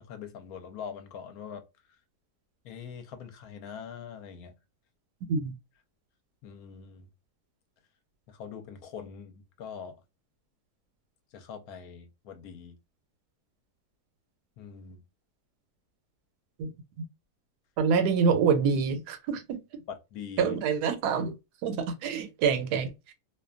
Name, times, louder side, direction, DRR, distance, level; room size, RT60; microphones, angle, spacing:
voice 1, 0.1-1.6 1.9-2.0 2.6-4.5 6.4-7.1 8.3-10.0 11.3-12.7 14.6-15.0 19.9-20.6, left 7 dB, 75° left, 1.0 m, -43 dB
voice 2, 17.8-19.6 20.4-21.3 21.6-23.1, right 6 dB, 85° right, 1.2 m, -26 dB
2.6 x 2.2 x 2.3 m
omnidirectional pair, 1.7 m